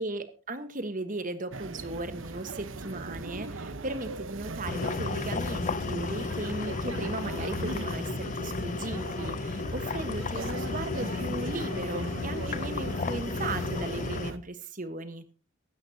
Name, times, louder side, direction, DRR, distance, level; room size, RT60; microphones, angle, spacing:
voice 1, 0.0-15.2, right 2 dB, 40° right, 11 dB, 1.4 m, -37 dB
sound 1, 1.5-14.4, right 2 dB, 60° right, 1.1 m, -39 dB
sound 2, 4.6-14.3, left 3 dB, 35° left, 0.5 m, -33 dB
16.5 x 13.0 x 2.8 m, 0.34 s
head